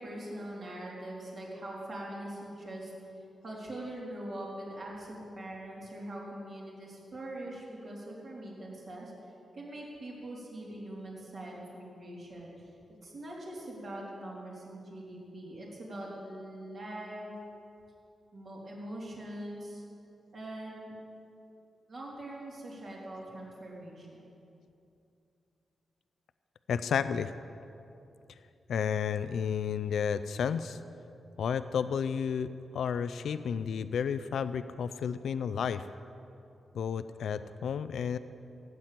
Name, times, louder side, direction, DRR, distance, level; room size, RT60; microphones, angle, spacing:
voice 1, 0.0-2.9 3.4-12.7 13.0-17.4 18.3-19.8 20.3-21.0 21.9-24.2, right 1 dB, 45° right, -4 dB, 3.6 m, -42 dB
voice 2, 26.7-27.3 28.7-30.8 31.4-35.9 36.7-38.2, left 7 dB, 90° left, 13 dB, 0.5 m, -32 dB
16.0 x 9.6 x 7.5 m, 2.7 s
wide cardioid pair, 170°, 0 cm